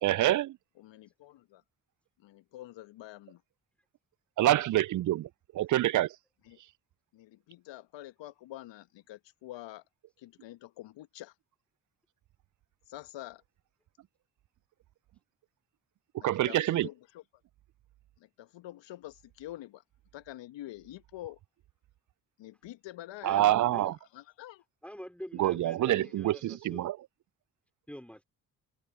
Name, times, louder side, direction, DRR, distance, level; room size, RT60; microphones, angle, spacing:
voice 1, 0.0-0.6 4.4-5.3 5.5-6.1 16.2-16.9 23.2-23.9 25.4-27.0, right 14 dB, 40° right, 0.5 m, -26 dB
voice 2, 0.8-1.6 2.2-3.4 6.4-6.6 7.1-9.8 10.2-11.3 12.9-13.4 16.2-17.2 18.2-19.8 20.1-21.4 22.4-24.6 25.5-26.1, left 15 dB, 65° left, 1.7 m, -47 dB
voice 3, 24.8-26.9 27.9-28.2, equal, 5° left, 5.0 m, -46 dB
hypercardioid pair, 40°, 47 cm